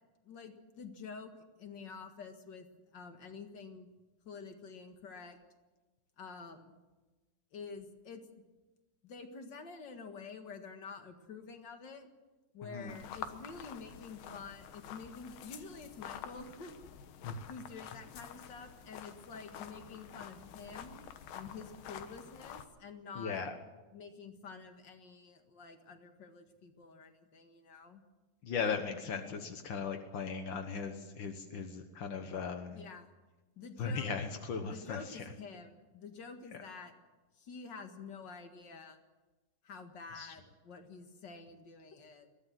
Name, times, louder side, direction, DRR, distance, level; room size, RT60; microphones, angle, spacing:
voice 1, 0.2-1.3 1.6-2.7 2.9-3.9 4.2-5.4 6.2-6.7 7.5-8.2 9.0-12.1 12.5-16.7 17.5-21.0 21.3-23.4 23.9-28.0 32.7-33.1 33.5-34.1 34.6-36.9 37.3-39.0 39.6-42.3, left 5 dB, 45° left, 6 dB, 1.7 m, -48 dB
voice 2, 12.6-13.0 17.2-17.5 23.1-23.5 28.4-32.8 33.8-35.2 40.1-40.3, left 5 dB, 65° left, 5 dB, 1.2 m, -38 dB
sound 1, 12.9-22.7, left 9 dB, 85° left, 3.0 m, -48 dB
22.0 x 16.0 x 7.6 m, 1.2 s
omnidirectional pair, 4.1 m